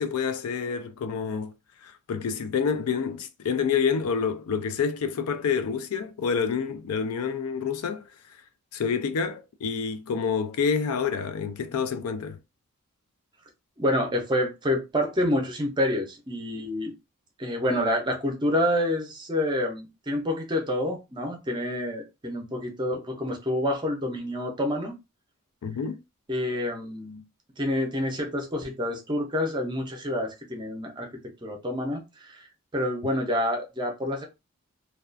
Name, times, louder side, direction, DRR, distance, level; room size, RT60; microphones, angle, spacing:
voice 1, 0.0-1.5 1.8-8.0 8.7-12.4 25.6-26.0, left 6 dB, 75° left, 0.4 m, -28 dB
voice 2, 13.8-16.9 17.4-25.0 26.3-27.2 27.6-31.1 31.4-32.5 32.7-34.2, left 1 dB, 20° right, 0.5 m, -28 dB
2.3 x 2.3 x 2.4 m
head